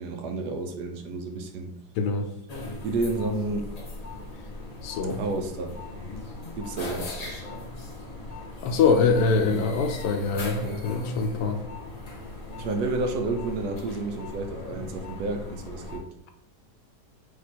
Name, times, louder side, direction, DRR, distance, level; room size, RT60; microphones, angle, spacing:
voice 1, 0.0-1.7 2.8-3.7 5.2-5.7 6.6-7.4 10.6-10.8 12.6-16.0, right 2 dB, 80° right, 5 dB, 1.2 m, -30 dB
voice 2, 2.0-2.3 4.8-5.2 8.6-11.6, left 4 dB, 85° left, 5 dB, 1.2 m, -24 dB
sound 1, 2.5-16.0, left 2 dB, 45° left, 0.5 m, -38 dB
3.5 x 3.0 x 4.1 m, 0.75 s
omnidirectional pair, 1.8 m